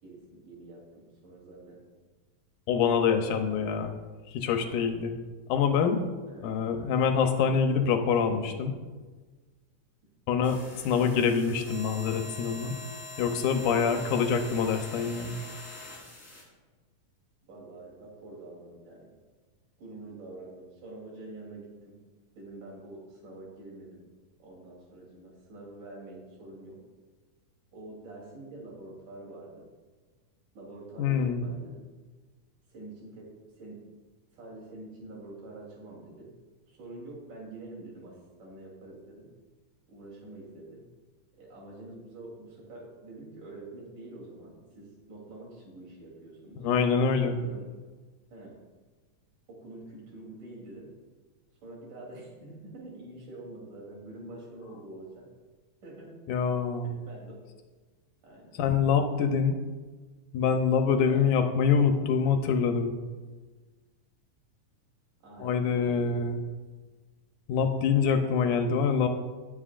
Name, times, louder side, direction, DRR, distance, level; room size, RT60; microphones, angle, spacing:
voice 1, 0.0-1.8 2.9-3.8 4.5-4.7 6.3-6.7 13.9-14.3 17.5-19.1 19.8-22.0 22.3-24.1 24.4-26.9 27.7-29.7 30.5-31.9 32.7-33.8 34.3-36.3 36.7-39.3 39.9-40.9 41.3-46.7 47.2-47.7 48.3-48.6 49.5-50.9 51.6-55.3 55.8-56.3 56.8-57.4 58.2-58.6 61.0-61.3 65.2-66.4, right 2 dB, 85° right, -4 dB, 4.8 m, -46 dB
voice 2, 2.7-3.9 4.3-5.1 5.5-6.0 6.4-8.8 10.3-10.6 10.8-12.8 13.2-15.4 31.0-31.4 46.6-47.4 56.3-56.9 58.6-59.6 60.3-62.9 65.4-66.4 67.5-69.1, left 6 dB, 85° left, 6 dB, 2.4 m, -25 dB
sound 1, 10.4-16.4, left 2 dB, 20° left, 3.4 m, -44 dB
19.5 x 8.0 x 2.5 m, 1.3 s
omnidirectional pair, 3.5 m